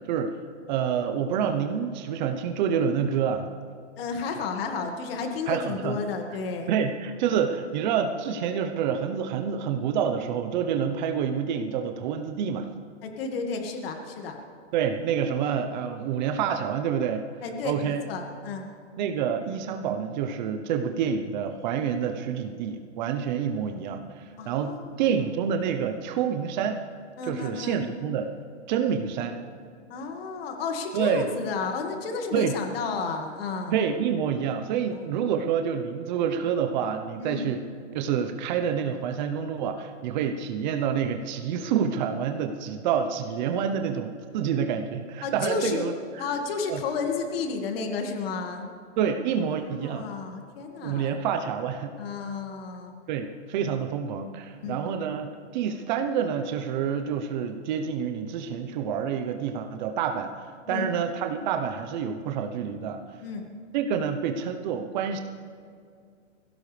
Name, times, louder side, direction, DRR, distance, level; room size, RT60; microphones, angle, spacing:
voice 1, 0.7-3.5 5.5-6.0 6.7-12.7 14.7-17.3 17.6-18.0 19.0-26.8 27.2-28.3 28.7-29.4 30.9-31.3 32.3-32.5 33.7-37.6 37.9-46.3 46.7-46.8 49.0-50.1 50.8-52.0 53.1-63.0 63.7-65.2, right 7 dB, 40° right, 6 dB, 1.0 m, -28 dB
voice 2, 4.0-6.7 13.0-14.4 17.4-18.7 24.4-24.9 27.2-27.8 29.9-33.7 34.9-35.0 37.2-37.5 45.2-45.9 46.2-48.6 49.6-51.1 52.0-52.9 54.6-54.9 60.7-60.9 63.2-63.5, left 5 dB, 50° left, 3 dB, 2.1 m, -32 dB
22.0 x 16.5 x 3.4 m, 2.2 s
hypercardioid pair, 145°, 36 cm